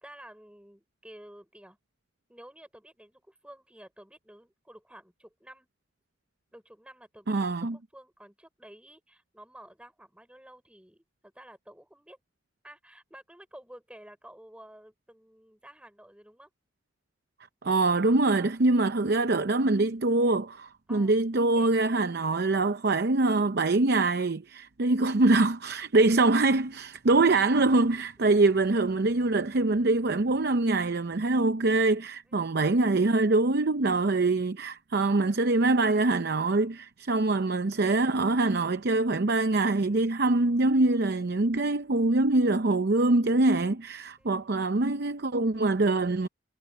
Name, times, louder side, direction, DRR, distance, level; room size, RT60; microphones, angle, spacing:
voice 1, 0.0-1.8 2.3-5.7 6.5-12.2 12.6-16.5 18.4-18.6 20.9-21.1 21.5-21.9 24.9-25.1 32.3-32.5 44.2-44.6, right 1 dB, 5° right, 4.9 m, -52 dB
voice 2, 7.3-7.8 17.6-46.3, right 2 dB, 60° right, 0.7 m, -24 dB
head